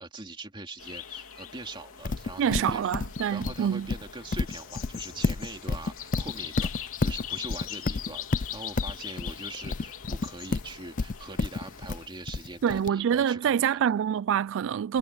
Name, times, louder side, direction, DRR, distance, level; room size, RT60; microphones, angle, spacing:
voice 1, 0.0-2.9 3.3-13.8, right 2 dB, 20° right, 2.9 m, -42 dB
sound 1, 0.8-12.1, left 10 dB, 65° left, 3.5 m, -41 dB
Livestock farm animals working animals, 2.0-12.9, left 3 dB, 35° left, 0.5 m, -30 dB
voice 2, 2.4-3.9 12.6-15.0, right 8 dB, 60° right, 0.3 m, -26 dB
head